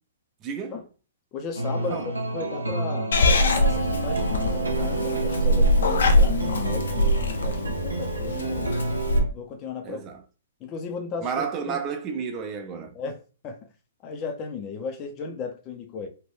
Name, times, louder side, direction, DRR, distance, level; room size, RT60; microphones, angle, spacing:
voice 1, 0.4-0.8 1.8-2.1 9.8-10.2 11.2-13.0, right 6 dB, 25° right, 0.6 m, -31 dB
voice 2, 1.3-3.1 3.6-8.7 9.3-10.0 10.6-11.8 12.9-13.6 14.0-16.1, left 5 dB, 30° left, 0.7 m, -35 dB
sound 1, 1.5-9.2, right 3 dB, 85° right, 0.7 m, -30 dB
Purr / Meow, 3.1-9.2, left 1 dB, 70° left, 0.5 m, -23 dB
2.9 x 2.5 x 3.3 m
figure-of-eight pair, 120°, 0 cm